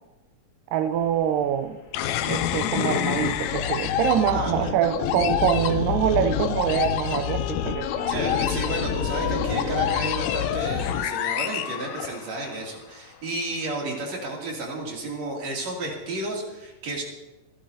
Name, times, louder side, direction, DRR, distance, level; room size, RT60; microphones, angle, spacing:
voice 1, 0.7-1.8 2.3-8.1, right 9 dB, 90° right, 9 dB, 2.3 m, -25 dB
sound 1, 0.9-9.9, equal, 60° left, 0.8 m, -39 dB
sound 2, 1.9-12.6, left 10 dB, 80° left, 1.7 m, -27 dB
voice 2, 4.3-4.8 8.1-17.0, right 2 dB, 55° right, -2 dB, 3.8 m, -32 dB
25.5 x 12.0 x 2.7 m, 1.1 s
omnidirectional pair, 3.8 m